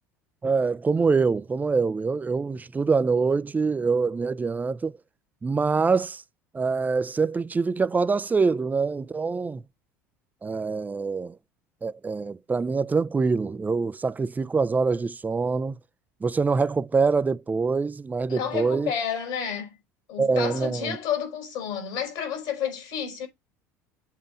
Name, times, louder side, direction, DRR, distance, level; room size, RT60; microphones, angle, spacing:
voice 1, 0.4-4.9 5.4-6.2 6.5-9.6 10.4-11.4 11.8-15.8 16.2-18.9 20.2-21.0, right 4 dB, 20° right, 0.5 m, -25 dB
voice 2, 18.3-19.7 20.1-23.3, left 8 dB, 65° left, 4.8 m, -30 dB
7.6 x 3.8 x 5.8 m
hypercardioid pair, 70°, 9 cm